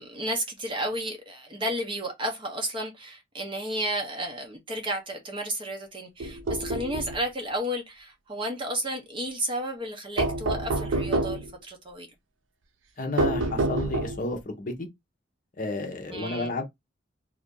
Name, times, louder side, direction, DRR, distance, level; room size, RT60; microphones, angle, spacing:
voice 1, 0.0-12.1 16.1-16.5, right 1 dB, 25° right, 0.8 m, -32 dB
sound 1, 6.2-7.2 10.2-11.5 13.2-14.3, right 2 dB, 80° right, 0.6 m, -27 dB
voice 2, 13.0-14.9 15.6-16.6, left 2 dB, 45° left, 0.8 m, -31 dB
2.8 x 2.6 x 3.7 m
head